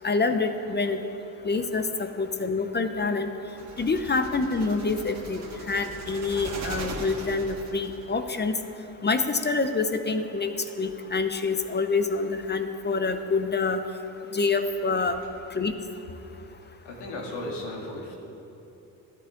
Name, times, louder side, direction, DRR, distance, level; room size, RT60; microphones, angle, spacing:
voice 1, 0.0-1.0 1.4-3.3 3.8-5.4 5.7-8.5 9.0-10.5 10.8-13.8 14.3-15.2 15.5-15.7, left 4 dB, 25° left, 8 dB, 0.7 m, -26 dB
sound 1, 3.5-8.0, right 3 dB, 40° right, 1.9 m, -39 dB
voice 2, 16.8-18.2, left 1 dB, 80° left, -1 dB, 2.3 m, -35 dB
12.5 x 9.6 x 3.8 m, 3.0 s
supercardioid pair, 70°, 41 cm